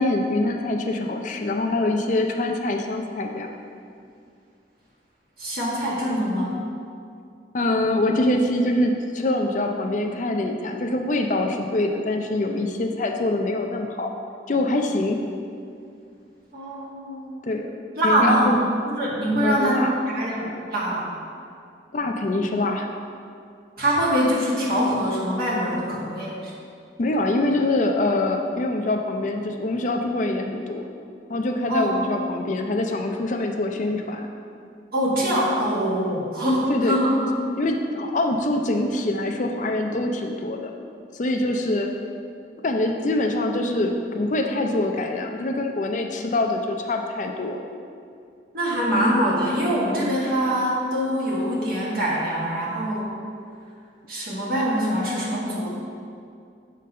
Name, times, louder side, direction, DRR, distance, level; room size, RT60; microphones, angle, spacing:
voice 1, 0.0-3.5 7.5-14.1 14.5-15.2 17.4-17.7 18.0-18.6 19.4-20.0 21.9-22.9 27.0-30.9 31.3-34.3 36.7-37.0 37.6-40.7 41.1-41.9 42.6-47.6, left 2 dB, 40° left, 3 dB, 0.4 m, -24 dB
voice 2, 5.4-6.5 16.5-17.4 18.0-18.5 19.0-21.1 23.8-26.5 31.7-32.1 34.9-37.2 48.5-53.1 54.1-55.7, equal, 55° right, -6 dB, 1.6 m, -23 dB
6.5 x 3.9 x 5.3 m, 2.4 s
head